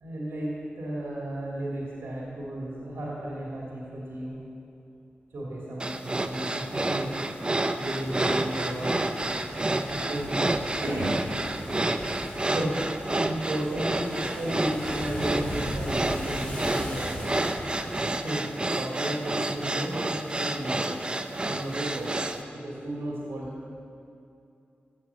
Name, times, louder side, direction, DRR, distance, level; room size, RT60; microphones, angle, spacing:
voice 1, 0.0-4.4 5.3-7.1 7.7-9.0 9.9-10.4 10.8-11.3 12.5-12.8 13.1-17.3 18.1-18.5 18.8-20.9 21.4-22.2 22.6-23.7, right 1 dB, 80° right, -5 dB, 2.5 m, -33 dB
sound 1, 5.8-22.4, right 2 dB, 25° right, 0.7 m, -29 dB
sound 2, 8.0-18.0, equal, 30° left, 2.8 m, -39 dB
15.5 x 7.3 x 7.0 m, 2.6 s
wide cardioid pair, 85°, 4 cm